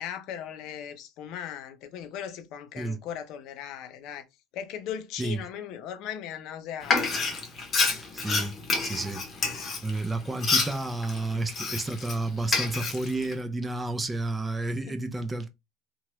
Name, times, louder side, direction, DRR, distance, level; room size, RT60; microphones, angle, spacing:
voice 1, 0.0-4.2 4.5-7.3 8.3-8.4 11.3-11.4 14.9-15.0, left 9 dB, 60° left, 0.6 m, -38 dB
Frying (food), 6.8-12.2 12.5-13.3, left 4 dB, 30° left, 0.9 m, -28 dB
voice 2, 8.1-9.2 9.8-15.5, right 2 dB, 10° right, 0.5 m, -31 dB
2.9 x 2.3 x 3.0 m
cardioid pair, 135°, 0 cm